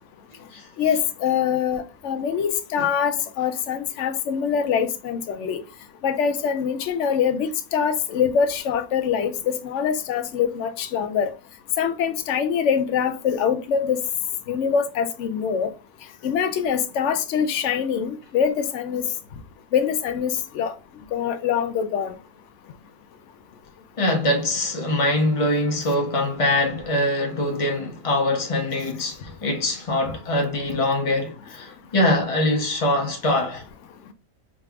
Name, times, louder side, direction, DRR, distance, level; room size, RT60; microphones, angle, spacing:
voice 1, 0.8-5.6 6.0-11.3 11.8-14.0 14.5-15.7 16.2-19.0 19.7-20.7 21.1-22.1, left 7 dB, 70° left, 0.7 m, -24 dB
voice 2, 24.0-33.6, left 1 dB, 35° left, 0.6 m, -23 dB
5.0 x 3.3 x 2.3 m
omnidirectional pair, 1.7 m